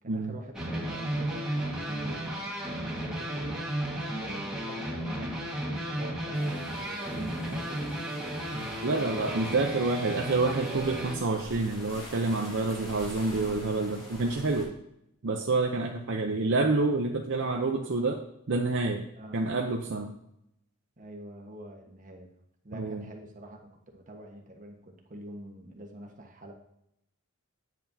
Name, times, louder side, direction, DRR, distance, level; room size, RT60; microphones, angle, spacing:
voice 1, 0.0-5.3 5.7-8.5 19.1-19.4 21.0-22.3 22.6-23.6 23.9-26.5, right 1 dB, 40° right, 2 dB, 1.4 m, -46 dB
sound 1, 0.5-11.2, right 1 dB, 5° right, 1.6 m, -34 dB
sound 2, 6.3-14.7, left 1 dB, 25° left, 2.5 m, -46 dB
voice 2, 8.8-14.7 15.2-18.2 18.5-19.1 19.3-20.1 22.8-23.0, right 3 dB, 60° right, 2 dB, 0.7 m, -28 dB
9.0 x 8.0 x 2.8 m, 0.79 s
head